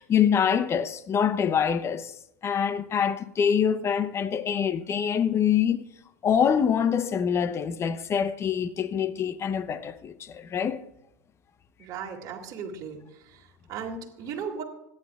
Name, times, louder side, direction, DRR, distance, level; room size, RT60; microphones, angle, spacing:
voice 1, 0.0-2.1 2.4-5.8 6.2-10.8, left 8 dB, 30° left, 0.9 m, -25 dB
voice 2, 11.8-13.0 13.3-14.6, right 6 dB, 40° right, 2.5 m, -36 dB
25.5 x 9.8 x 2.5 m
hypercardioid pair, 95°, 10 cm